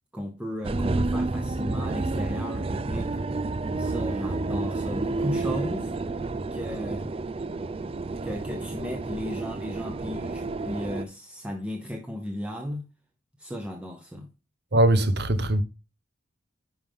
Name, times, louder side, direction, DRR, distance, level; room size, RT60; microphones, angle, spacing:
voice 1, 0.1-3.2 3.8-5.9 6.5-7.1 8.2-12.9 13.4-14.3, equal, 5° right, 0.9 m, -35 dB
sound 1, 0.6-11.0, right 3 dB, 30° right, 0.4 m, -30 dB
voice 2, 14.7-15.6, right 1 dB, 55° right, 1.0 m, -21 dB
10.5 x 5.5 x 3.6 m
head